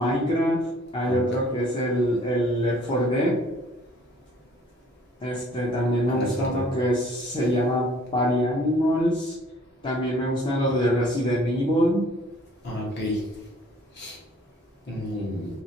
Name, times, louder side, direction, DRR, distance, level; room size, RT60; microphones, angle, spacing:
voice 1, 0.0-3.4 5.2-9.3 9.8-12.1, equal, 20° left, -5 dB, 0.5 m, -24 dB
voice 2, 6.0-6.6 12.6-13.2 14.0-14.2 14.9-15.5, left 1 dB, 50° left, -4 dB, 1.1 m, -30 dB
2.9 x 2.8 x 2.8 m, 1.1 s
head